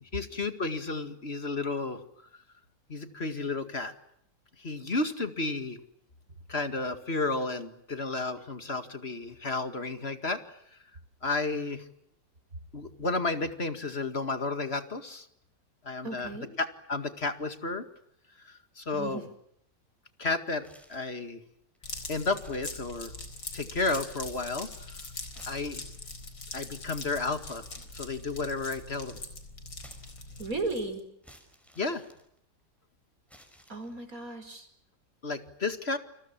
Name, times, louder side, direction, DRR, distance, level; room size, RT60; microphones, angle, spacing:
voice 1, 0.0-2.0 2.3-2.4 2.9-3.9 4.6-5.8 6.5-10.6 11.2-11.9 12.7-15.3 15.8-16.3 16.6-17.8 18.4-19.3 20.2-21.4 22.1-23.1 23.5-25.0 25.4-25.8 26.5-27.7 27.9-29.2 31.8-32.0 35.2-36.0, left 3 dB, 35° left, 9 dB, 2.2 m, -32 dB
voice 2, 16.0-16.5 18.9-19.3 30.4-31.0 33.7-34.7, right 3 dB, 50° right, 8 dB, 5.2 m, -35 dB
sound 1, 20.6-21.3 21.8-21.9 22.3-23.3 23.7-24.4 25.2-26.2 27.7-28.7 29.8-30.6 31.2-32.8 33.3-34.2, equal, ahead, 5.8 m, -58 dB
sound 2, 21.8-31.0, left 3 dB, 85° left, 5.0 m, -42 dB
29.5 x 26.5 x 7.3 m, 0.73 s
omnidirectional pair, 1.9 m